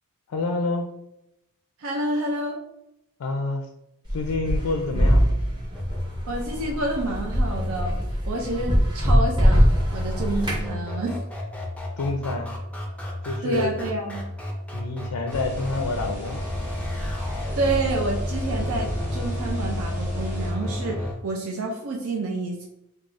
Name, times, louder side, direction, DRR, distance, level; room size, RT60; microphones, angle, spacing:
voice 1, 0.3-0.9 3.2-3.7 4.1-5.2 12.0-12.5 13.2-13.7 14.7-16.4, left 3 dB, 85° left, 3 dB, 0.4 m, -27 dB
voice 2, 1.8-2.6 6.3-8.0 8.3-11.2 13.4-14.3 17.5-22.7, right 2 dB, 65° right, 1 dB, 0.5 m, -29 dB
sound 1, 4.1-10.7, equal, 20° right, 0.8 m, -22 dB
sound 2, 5.7-21.1, left 1 dB, 5° left, 0.5 m, -32 dB
sound 3, 15.3-20.5, equal, 35° right, 1.2 m, -33 dB
4.7 x 2.3 x 2.5 m, 0.83 s
head